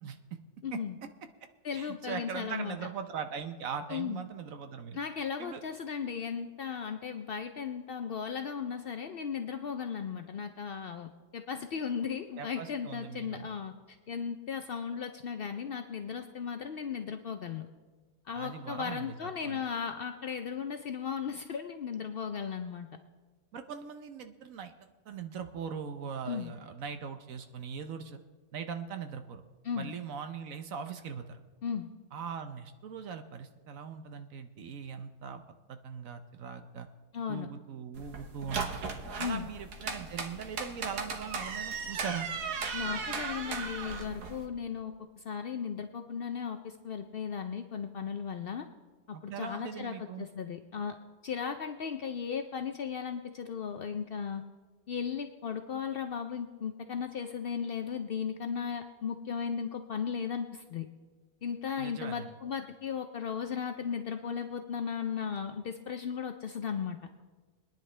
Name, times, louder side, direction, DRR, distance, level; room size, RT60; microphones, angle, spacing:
voice 1, 0.0-0.4 0.7-0.8 1.7-5.0 5.4-5.6 12.4-13.5 18.4-19.6 23.5-28.2 28.5-29.4 29.7-31.4 32.1-36.9 37.3-38.8 39.2-42.3 49.1-50.3 61.8-62.3, right 6 dB, 65° right, 8 dB, 1.1 m, -40 dB
voice 2, 0.6-1.0 1.6-2.8 3.9-4.2 4.9-13.7 14.1-17.7 18.3-22.9 26.3-26.5 29.6-29.9 31.6-31.9 37.1-37.5 39.2-39.5 42.7-48.7 49.1-51.0 51.2-54.4 54.9-60.9 61.4-67.0, left 7 dB, 75° left, 7 dB, 0.5 m, -36 dB
sound 1, 37.9-44.5, right 5 dB, 85° right, 1.7 m, -37 dB
23.5 x 10.0 x 3.3 m, 1.4 s
omnidirectional pair, 1.7 m